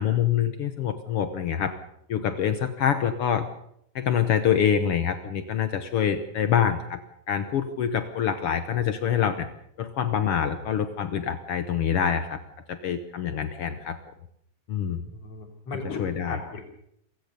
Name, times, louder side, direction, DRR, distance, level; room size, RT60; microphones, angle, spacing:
voice 1, 0.0-1.7 2.1-3.5 3.9-7.0 7.3-9.5 9.8-12.4 12.7-14.0 14.7-15.0 15.8-16.4, left 8 dB, 85° left, 10 dB, 1.2 m, -25 dB
voice 2, 15.0-16.6, left 3 dB, 45° left, 3 dB, 4.3 m, -37 dB
27.0 x 16.0 x 6.8 m, 0.75 s
omnidirectional pair, 4.2 m